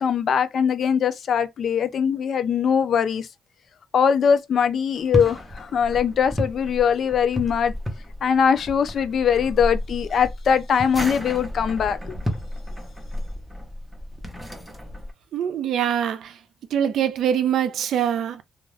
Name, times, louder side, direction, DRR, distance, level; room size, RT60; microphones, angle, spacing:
voice 1, 0.0-3.3 3.9-7.7 8.2-12.2, left 7 dB, 60° left, 0.4 m, -21 dB
sound 1, 4.9-15.1, equal, ahead, 0.9 m, -32 dB
voice 2, 15.3-16.4 16.7-18.4, right 9 dB, 75° right, 0.5 m, -23 dB
2.4 x 2.3 x 3.2 m
cardioid pair, 85°, 0 cm